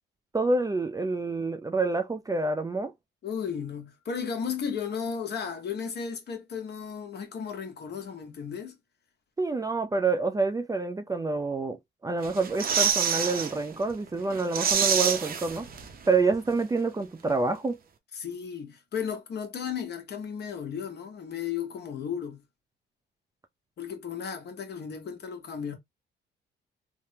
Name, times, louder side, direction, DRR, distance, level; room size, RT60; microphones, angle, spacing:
voice 1, 0.3-2.9 9.4-11.8 12.0-15.7 16.1-17.8, right 3 dB, 20° right, 0.4 m, -27 dB
voice 2, 3.2-8.8 18.1-22.4 23.8-25.7, left 7 dB, 55° left, 1.1 m, -34 dB
sound 1, 12.2-13.5 13.9-14.0 14.3-16.1 16.3-16.4, right 7 dB, 50° right, 0.7 m, -27 dB
3.4 x 2.1 x 2.7 m
cardioid pair, 90°, 20 cm